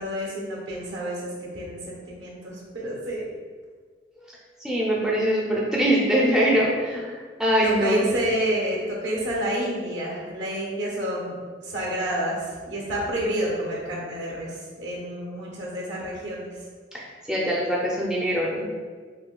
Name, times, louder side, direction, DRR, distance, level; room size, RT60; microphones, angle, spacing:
voice 1, 0.0-3.2 7.6-11.3 11.6-14.5 14.8-16.5, right 1 dB, 70° right, -3 dB, 1.0 m, -29 dB
voice 2, 4.6-8.0 16.9-17.0 17.3-18.7, equal, 5° right, -5 dB, 0.4 m, -23 dB
5.3 x 2.3 x 2.2 m, 1.6 s
head